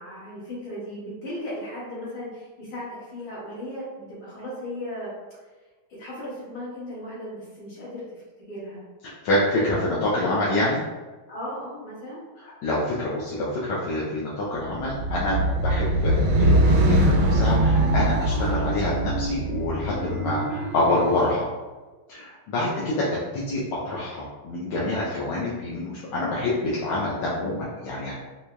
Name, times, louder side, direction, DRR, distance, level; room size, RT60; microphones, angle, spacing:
voice 1, 0.0-5.1 6.0-8.8 11.3-12.2 18.6-18.8 22.6-22.9, left 1 dB, 60° left, -10 dB, 2.4 m, -36 dB
voice 2, 9.0-10.8 12.4-21.5 22.1-28.1, left 1 dB, 80° left, -7 dB, 1.5 m, -27 dB
sound 1, 14.7-21.2, right 1 dB, 80° right, 1.3 m, -22 dB
4.7 x 2.8 x 2.2 m, 1.3 s
omnidirectional pair, 2.2 m